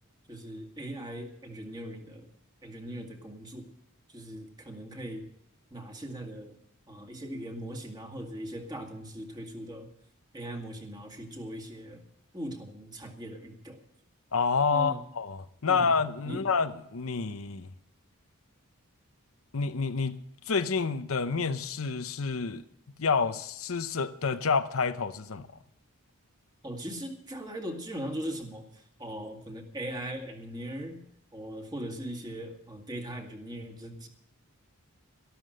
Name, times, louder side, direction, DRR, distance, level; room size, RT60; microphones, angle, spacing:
voice 1, 0.3-2.3 2.6-3.7 4.1-5.3 5.7-6.6 6.9-9.9 10.3-12.0 12.3-13.8 14.7-15.0 15.6-15.9 16.2-16.4 26.6-31.0 31.3-34.1, right 1 dB, 20° right, 2.1 m, -39 dB
voice 2, 14.3-17.7 19.5-20.2 20.5-22.7 23.0-25.5, left 5 dB, 65° left, 0.8 m, -28 dB
13.0 x 12.5 x 6.5 m
head